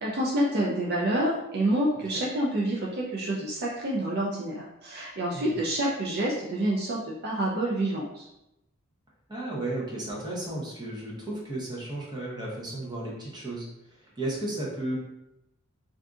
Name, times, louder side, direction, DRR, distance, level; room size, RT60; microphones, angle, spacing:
voice 1, 0.0-8.3, right 1 dB, 50° right, -4 dB, 0.5 m, -28 dB
voice 2, 9.3-15.0, right 1 dB, 20° right, -5 dB, 0.8 m, -34 dB
2.6 x 2.5 x 3.5 m, 0.89 s
head